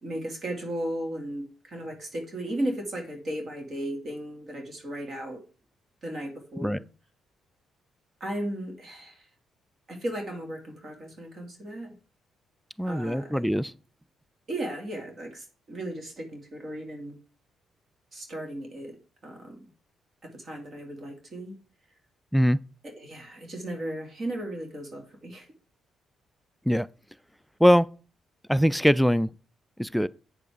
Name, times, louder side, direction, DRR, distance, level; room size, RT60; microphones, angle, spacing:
voice 1, 0.0-5.4 6.0-6.8 8.2-9.3 9.9-12.0 12.8-13.5 14.5-17.2 18.1-19.0 19.2-19.7 20.2-21.6 22.8-25.5, right 1 dB, 45° right, 2.4 m, -35 dB
voice 2, 12.8-13.7 22.3-22.6 26.7-26.9 27.6-27.9 28.5-29.3 29.8-30.1, equal, ahead, 0.3 m, -22 dB
8.5 x 6.8 x 3.6 m
cardioid pair, 90°, 0 cm